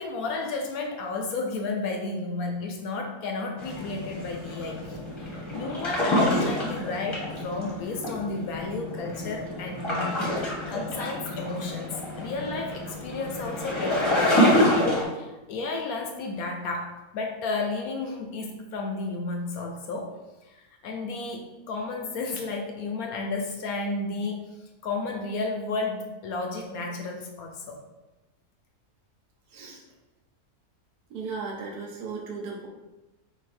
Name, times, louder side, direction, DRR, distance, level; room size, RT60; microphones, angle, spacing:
voice 1, 0.0-10.3 10.7-14.9 15.1-20.1 20.4-27.8, left 3 dB, 70° left, 2 dB, 0.9 m, -33 dB
sound 1, 3.6-15.0, left 1 dB, 20° left, 0.9 m, -27 dB
voice 2, 29.5-29.8 31.1-32.7, right 4 dB, 70° right, -1 dB, 1.3 m, -36 dB
4.0 x 2.7 x 4.2 m, 1.1 s
omnidirectional pair, 1.7 m